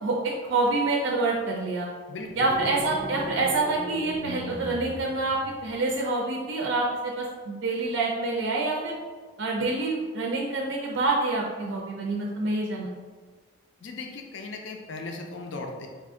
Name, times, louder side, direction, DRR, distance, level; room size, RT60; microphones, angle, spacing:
voice 1, 0.0-1.9 2.4-8.9 9.4-12.9, right 2 dB, 60° right, -2 dB, 0.5 m, -27 dB
voice 2, 2.1-2.5 13.8-15.9, left 3 dB, 60° left, 2 dB, 0.4 m, -37 dB
sound 1, 2.2-5.9, equal, 5° right, 0.5 m, -38 dB
4.2 x 2.5 x 3.6 m, 1.5 s
head